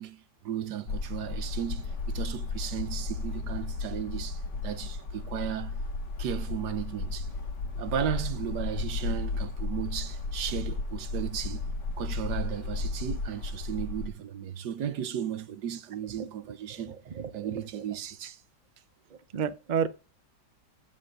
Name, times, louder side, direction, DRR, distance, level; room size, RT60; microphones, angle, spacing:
voice 1, 0.0-5.8 6.2-7.3 7.8-11.7 12.0-16.9 17.3-18.4, right 9 dB, 75° right, 1.5 m, -35 dB
sound 1, 0.9-14.1, left 3 dB, 85° left, 2.3 m, -34 dB
voice 2, 17.2-17.6 19.3-19.9, right 7 dB, 50° right, 0.5 m, -30 dB
13.5 x 5.3 x 6.6 m
omnidirectional pair, 1.8 m